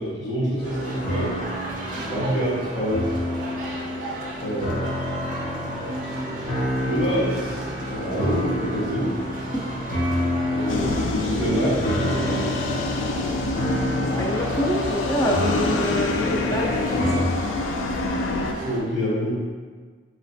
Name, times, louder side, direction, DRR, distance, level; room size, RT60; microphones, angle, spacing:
voice 1, 0.0-1.4 2.1-3.1 4.4-4.8 5.6-5.7 6.0-6.4 6.7-9.1 10.5-12.5 18.4-19.3, equal, 65° left, -8 dB, 1.3 m, -27 dB
sound 1, 0.6-17.2, equal, 45° left, 0.7 m, -29 dB
sound 2, 0.6-18.8, right 2 dB, 45° right, 0.5 m, -34 dB
sound 3, 10.7-18.5, left 3 dB, 80° left, 0.3 m, -27 dB
voice 2, 14.0-17.3, equal, 20° left, -2 dB, 0.4 m, -27 dB
3.9 x 3.0 x 2.7 m, 1.5 s
head